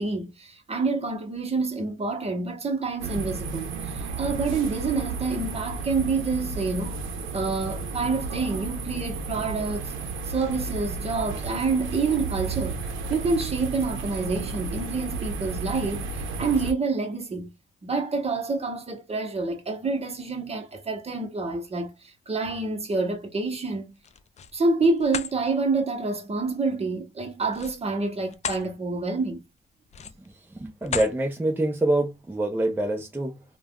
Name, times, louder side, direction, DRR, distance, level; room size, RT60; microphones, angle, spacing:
voice 1, 0.0-7.0 7.3-9.9 10.3-12.8 13.1-17.5 17.8-24.0 24.5-29.4, right 3 dB, 30° right, 0.9 m, -27 dB
sound 1, 3.0-16.7, right 3 dB, 85° right, 0.6 m, -33 dB
sound 2, 23.9-24.6 25.0-25.3 27.5-28.7 29.1-29.3 29.9-30.3 30.8-31.2, left 7 dB, 35° left, 0.4 m, -34 dB
voice 2, 30.3-33.4, right 1 dB, 10° right, 0.6 m, -26 dB
3.2 x 2.2 x 2.3 m
cardioid pair, 90°, 20 cm